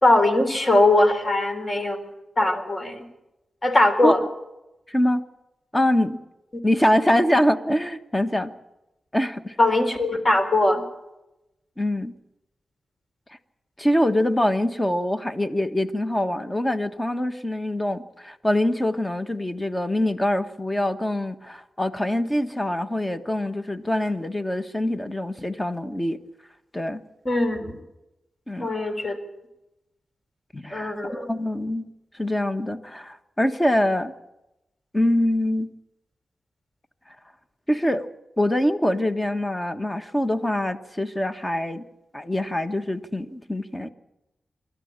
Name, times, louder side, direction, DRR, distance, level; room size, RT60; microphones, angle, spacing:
voice 1, 0.0-2.1 2.4-3.1 3.6-4.2 9.6-10.8 27.2-27.7 28.6-29.2 30.7-31.3, left 2 dB, 35° left, 7 dB, 4.1 m, -20 dB
voice 2, 4.9-5.2 5.7-6.2 6.6-8.5 9.1-9.5 11.8-12.1 13.8-26.2 26.7-27.0 28.5-28.7 30.5-30.9 31.3-31.9 32.1-34.1 34.9-35.7 37.7-38.1 38.4-41.9 42.1-43.9, left 1 dB, 15° left, 8 dB, 1.5 m, -24 dB
25.5 x 13.0 x 8.9 m, 0.94 s
cardioid pair, 70°, 0 cm